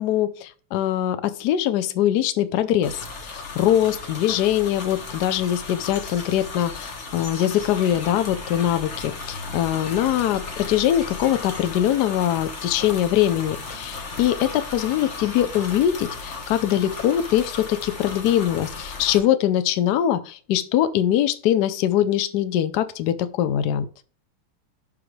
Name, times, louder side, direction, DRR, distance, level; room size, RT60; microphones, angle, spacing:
voice 1, 0.0-10.4 10.7-23.9, left 11 dB, 75° left, 12 dB, 0.9 m, -22 dB
sound 1, 2.8-19.2, left 4 dB, 45° left, 1.1 m, -35 dB
11.0 x 3.7 x 3.2 m, 0.42 s
omnidirectional pair, 2.4 m